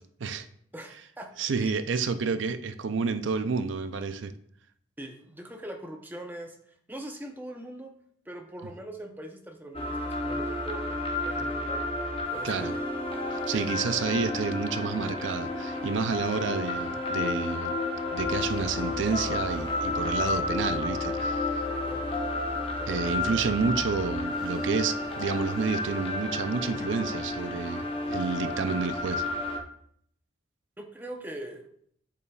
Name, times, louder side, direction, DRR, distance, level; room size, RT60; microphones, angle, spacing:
voice 1, 0.7-1.3 1.6-1.7 5.0-6.6 6.9-7.9 8.3-10.8 11.2-11.9 12.3-12.8 13.5-13.6 21.7-22.1 22.5-23.3 30.8-31.7, right 1 dB, 10° right, 3 dB, 0.7 m, -42 dB
voice 2, 1.4-4.3 12.4-12.7 13.3-17.8 18.1-21.6 22.9-29.2, right 5 dB, 75° right, 10 dB, 0.5 m, -30 dB
sound 1, 9.7-29.6, left 2 dB, 30° left, 0.9 m, -31 dB
8.3 x 6.8 x 2.3 m, 0.65 s
head